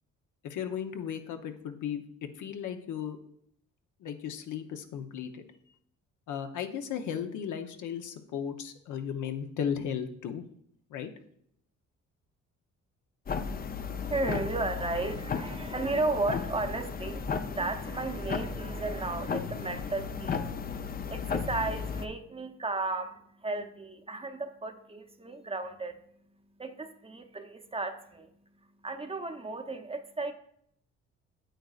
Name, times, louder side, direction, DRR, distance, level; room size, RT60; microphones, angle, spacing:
voice 1, 0.4-3.2 4.0-5.4 6.3-10.4 10.9-11.1, left 8 dB, 80° left, 0.8 m, -35 dB
sound 1, 13.3-22.1, left 5 dB, 30° left, 0.5 m, -35 dB
voice 2, 13.8-26.0 26.6-28.3 28.8-30.3, right 3 dB, 20° right, 0.7 m, -34 dB
9.0 x 7.8 x 2.4 m
cardioid pair, 90°, 30 cm